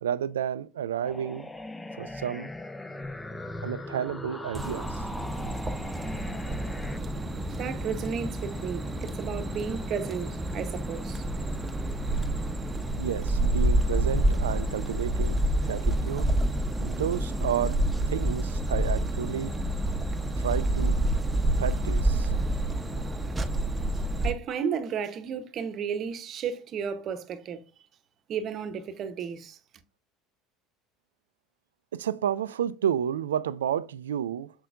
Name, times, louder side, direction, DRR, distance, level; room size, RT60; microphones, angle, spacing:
voice 1, 0.0-1.5 1.9-2.5 3.6-5.1 13.0-15.4 15.7-16.3 16.8-19.5 20.4-21.0 21.6-22.4 31.9-34.5, right 9 dB, 80° right, 0.3 m, -31 dB
sound 1, 1.0-7.0, left 2 dB, 15° left, 0.7 m, -39 dB
sound 2, 4.5-24.3, right 1 dB, 20° right, 0.8 m, -28 dB
voice 2, 7.5-11.2 24.2-27.6 28.3-29.6, right 7 dB, 45° right, 0.8 m, -33 dB
6.4 x 5.9 x 2.5 m
figure-of-eight pair, 65°, 0 cm